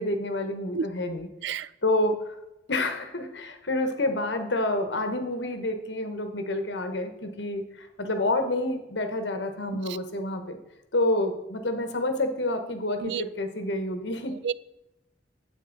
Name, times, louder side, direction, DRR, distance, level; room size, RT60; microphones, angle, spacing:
voice 1, 0.0-1.3 1.8-2.2 2.7-10.6 10.9-14.3, left 1 dB, 70° left, 7 dB, 1.1 m, -28 dB
voice 2, 0.7-0.9 1.4-1.7 9.7-10.0 13.0-13.2 14.4-14.5, right 7 dB, 65° right, 18 dB, 0.3 m, -30 dB
9.3 x 7.8 x 3.9 m, 0.91 s
head